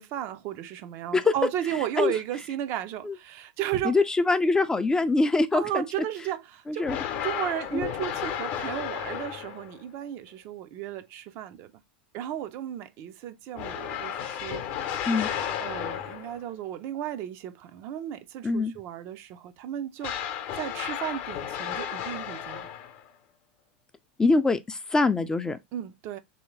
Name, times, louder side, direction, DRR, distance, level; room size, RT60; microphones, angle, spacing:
voice 1, 0.0-4.0 5.5-11.7 12.1-14.6 14.9-15.1 15.6-22.7 25.7-26.2, right 11 dB, 50° right, 0.4 m, -34 dB
voice 2, 3.8-5.8 6.7-7.0 7.7-7.8 15.1-15.3 18.4-18.7 24.2-25.6, left 3 dB, 15° left, 0.3 m, -23 dB
sound 1, 6.8-9.8 13.6-16.5 20.0-23.1, left 9 dB, 55° left, 0.7 m, -33 dB
3.2 x 2.7 x 3.0 m
hypercardioid pair, 95°, 5 cm